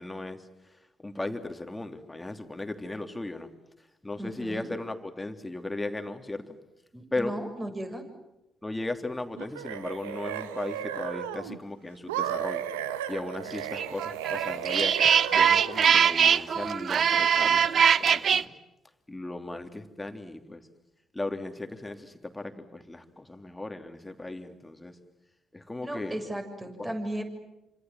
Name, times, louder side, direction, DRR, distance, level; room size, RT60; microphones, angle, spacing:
voice 1, 0.0-3.5 4.0-6.6 7.1-7.4 8.6-12.7 13.1-15.0 15.3-18.5 19.1-20.6 21.1-25.0 25.5-26.2 26.8-27.0, left 2 dB, 15° left, 6 dB, 3.2 m, -36 dB
voice 2, 4.2-4.7 6.9-8.0 25.8-27.2, right 1 dB, 20° right, 5 dB, 7.2 m, -35 dB
sound 1, 9.4-11.6 12.1-16.0, right 10 dB, 85° right, 1.2 m, -34 dB
sound 2, 13.7-18.4, right 7 dB, 55° right, 0.9 m, -22 dB
28.5 x 26.5 x 7.6 m, 0.95 s
hypercardioid pair, 45°, 0 cm